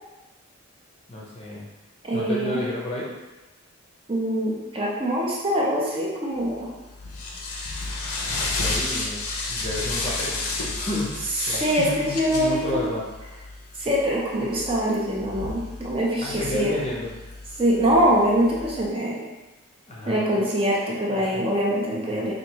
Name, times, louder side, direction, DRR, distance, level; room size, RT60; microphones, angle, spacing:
voice 1, 1.1-1.7 2.1-3.1 8.4-9.2 9.5-10.4 10.8-13.0 16.2-17.1 19.9-20.5 21.1-21.5, left 1 dB, 30° left, -4 dB, 0.6 m, -31 dB
voice 2, 2.0-2.6 4.1-6.7 11.4-12.8 13.8-16.7 17.6-19.2 20.1-22.3, equal, 25° right, -4 dB, 0.5 m, -23 dB
sound 1, 6.4-18.9, left 3 dB, 85° left, 0.6 m, -32 dB
4.3 x 2.6 x 2.9 m, 1.1 s
head